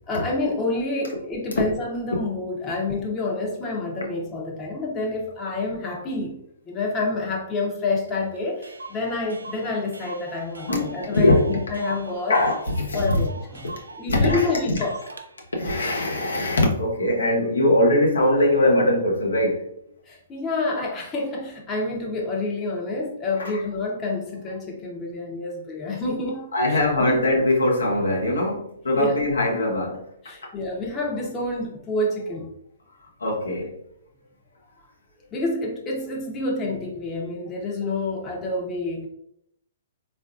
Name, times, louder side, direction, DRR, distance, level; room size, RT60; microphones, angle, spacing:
voice 1, 0.1-6.4 6.7-12.4 12.9-15.0 20.1-27.3 28.9-29.1 30.2-32.5 35.3-39.1, left 2 dB, 20° left, 0.7 m, -28 dB
Clock, 8.1-8.2 8.4-8.5 8.6-15.3, right 3 dB, 90° right, 0.4 m, -41 dB
voice 2, 10.7-11.6 12.3-13.2 14.1-14.8 15.5-19.6 23.4-23.6 26.5-30.1 33.2-33.8, left 1 dB, 90° left, 0.8 m, -21 dB
3.7 x 2.5 x 2.4 m
hypercardioid pair, 130°, 0 cm